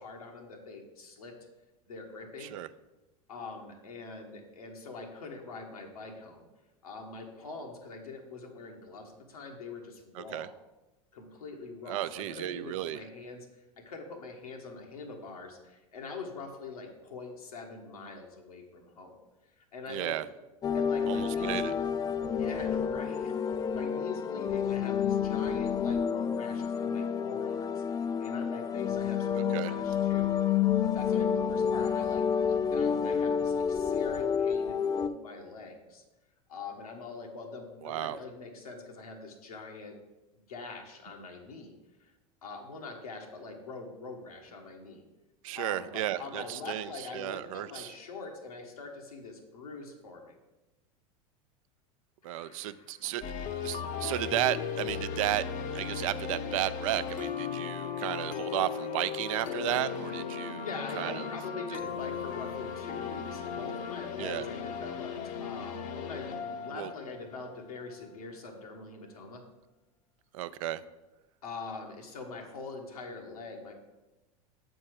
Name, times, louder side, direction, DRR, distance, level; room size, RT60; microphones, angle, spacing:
voice 1, 0.0-1.3 1.8-2.5 3.3-6.5 6.8-10.5 11.1-19.2 19.6-20.1 20.7-21.6 22.3-30.3 30.8-36.0 36.5-40.0 40.5-42.1 42.4-45.0 45.5-50.4 52.2-53.0 60.5-65.2 65.4-69.4 71.4-73.7, left 4 dB, 85° left, 2 dB, 1.3 m, -43 dB
voice 2, 10.1-10.5 11.9-13.0 19.9-20.3 21.1-21.7 29.5-29.7 37.8-38.2 45.4-47.9 52.2-55.5 55.7-60.7 61.0-61.3 61.7-61.8 64.2-64.5 66.7-66.9 70.3-70.8, right 14 dB, 65° right, 14 dB, 0.4 m, -33 dB
sound 1, 20.6-35.1, left 7 dB, 20° left, 0.3 m, -29 dB
sound 2, 53.2-68.1, left 7 dB, 40° left, 0.7 m, -37 dB
7.5 x 4.4 x 4.7 m, 1.0 s
hypercardioid pair, 90°, 19 cm